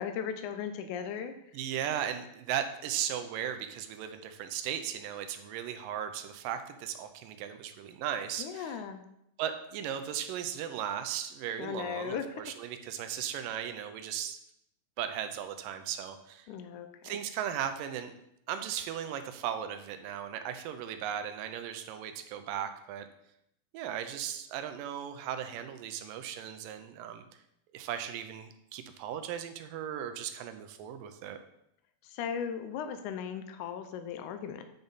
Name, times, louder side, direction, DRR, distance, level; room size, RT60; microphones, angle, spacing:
voice 1, 0.0-1.3 8.4-9.0 11.6-12.4 16.5-17.2 32.0-34.6, left 7 dB, 85° left, 8 dB, 1.7 m, -37 dB
voice 2, 1.5-8.8 9.4-14.4 15.0-16.5 17.0-18.1 18.5-23.1 23.7-27.2 27.7-31.4, right 9 dB, 80° right, 8 dB, 2.2 m, -37 dB
9.0 x 5.3 x 4.0 m, 0.77 s
omnidirectional pair, 4.1 m